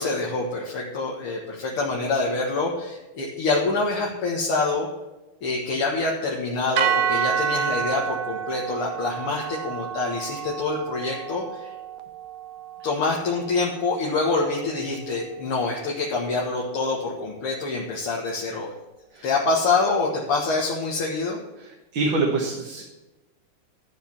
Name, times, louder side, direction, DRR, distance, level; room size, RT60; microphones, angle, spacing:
voice 1, 0.0-4.9 5.4-11.7 12.8-18.7 19.2-21.4, left 3 dB, 80° left, -3 dB, 2.5 m, -26 dB
sound 1, 6.8-15.0, right 8 dB, 90° right, 1.7 m, -29 dB
voice 2, 21.6-22.8, right 3 dB, 60° right, -2 dB, 2.4 m, -26 dB
13.0 x 4.8 x 7.2 m, 1.1 s
omnidirectional pair, 2.4 m